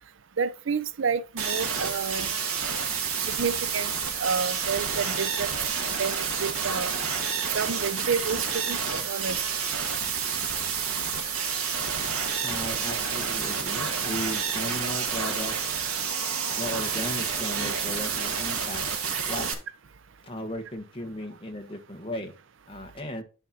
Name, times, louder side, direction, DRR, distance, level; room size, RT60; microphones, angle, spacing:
voice 1, 0.4-2.3 3.4-3.9 4.2-5.5 6.0-6.9 7.5-8.8 9.0-9.4, right 5 dB, 60° right, 0.5 m, -29 dB
sound 1, 1.4-19.5, right 6 dB, 85° right, 2.0 m, -29 dB
voice 2, 12.4-15.5 16.5-18.8 19.3-19.5 20.2-22.3 22.7-23.2, left 1 dB, 25° left, 1.5 m, -36 dB
10.5 x 4.4 x 4.2 m
head